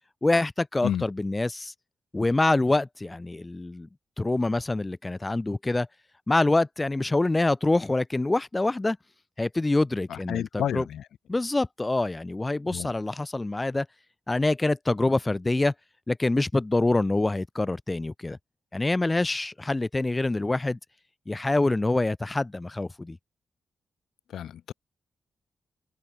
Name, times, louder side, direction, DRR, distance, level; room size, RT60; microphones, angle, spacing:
voice 1, 0.2-1.7 2.1-3.9 4.2-5.9 6.3-9.0 9.4-10.9 11.3-13.9 14.3-15.7 16.1-18.4 18.7-20.8 21.3-23.2, left 2 dB, 25° left, 4.3 m, -25 dB
voice 2, 10.1-11.0 12.7-12.9 24.3-24.7, left 10 dB, 75° left, 3.4 m, -30 dB
supercardioid pair, 45°, 0 cm